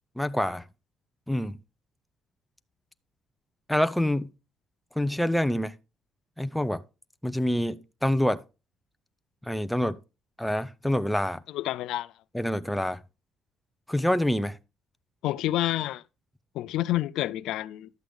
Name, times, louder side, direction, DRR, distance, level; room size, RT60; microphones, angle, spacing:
voice 1, 0.2-0.7 1.3-1.6 3.7-4.3 5.0-5.8 6.4-6.8 7.2-8.4 9.4-10.0 10.4-11.4 12.3-13.0 13.9-14.6, left 1 dB, 5° left, 0.5 m, -26 dB
voice 2, 11.5-12.1 15.2-16.0 16.5-17.9, left 15 dB, 90° left, 0.4 m, -28 dB
11.5 x 8.0 x 3.5 m
cardioid pair, 130°, 0 cm